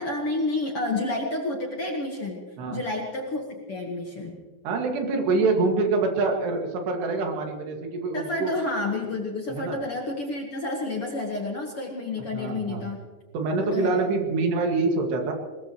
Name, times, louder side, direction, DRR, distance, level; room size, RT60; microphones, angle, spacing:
voice 1, 0.0-2.4 2.7-4.4 8.1-13.1 13.6-14.1, left 2 dB, 55° left, 1 dB, 1.7 m, -30 dB
voice 2, 4.6-8.5 9.5-9.8 12.3-12.9 13.3-15.3, right 3 dB, 85° right, 2 dB, 4.2 m, -25 dB
21.5 x 21.0 x 3.1 m, 1.4 s
omnidirectional pair, 4.7 m